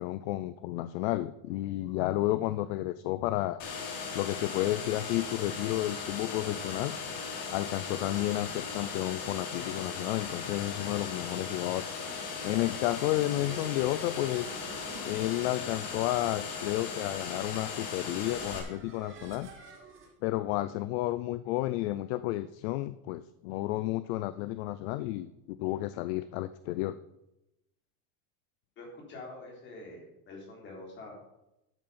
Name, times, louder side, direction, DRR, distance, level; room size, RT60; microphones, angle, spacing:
voice 1, 0.0-3.6 4.1-6.9 7.5-11.9 12.4-14.7 15.1-19.5 20.2-27.0, left 16 dB, 50° left, 14 dB, 0.5 m, -31 dB
sound 1, 3.6-18.6, left 5 dB, 70° left, 3.7 m, -38 dB
sound 2, 12.7-20.1, right 3 dB, 30° right, 2.5 m, -51 dB
voice 2, 28.8-31.1, left 2 dB, 25° left, 0 dB, 3.6 m, -46 dB
12.0 x 7.8 x 5.6 m, 0.88 s
cardioid pair, 175°, 41 cm